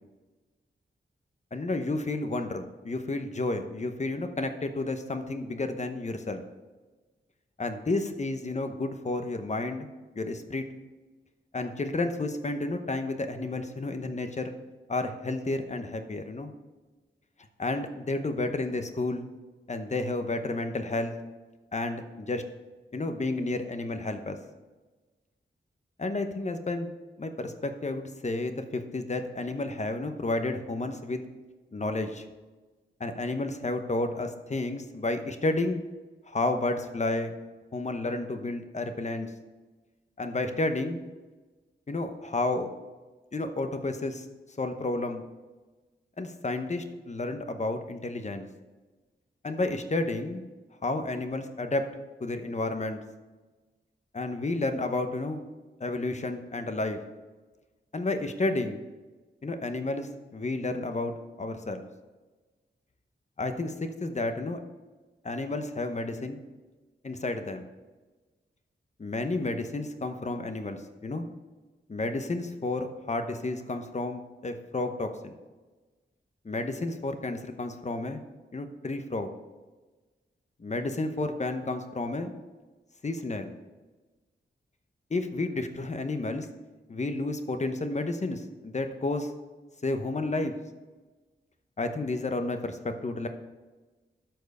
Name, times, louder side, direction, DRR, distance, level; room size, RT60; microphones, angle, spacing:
voice 1, 1.5-6.4 7.6-9.9 10.2-10.7 11.5-14.5 14.9-16.5 17.6-19.3 19.7-21.1 21.7-22.4 22.9-24.4 26.0-26.9 27.2-31.2 31.7-32.2 33.0-35.8 36.3-37.3 37.7-39.3 40.2-41.0 41.9-42.7 43.3-44.3 44.6-45.2 46.2-48.5 49.4-50.4 50.8-51.9 52.2-53.0 54.1-55.4 55.8-57.0 57.9-58.8 59.4-61.8 63.4-64.6 65.2-66.4 67.0-67.6 69.0-71.3 71.9-75.4 76.4-78.2 78.5-79.3 80.6-82.3 83.0-83.5 85.1-86.5 86.9-89.3 89.8-90.5 91.8-93.3, left 2 dB, 35° left, 7 dB, 0.8 m, -31 dB
13.0 x 4.6 x 5.3 m, 1.3 s
wide cardioid pair, 105°, 20 cm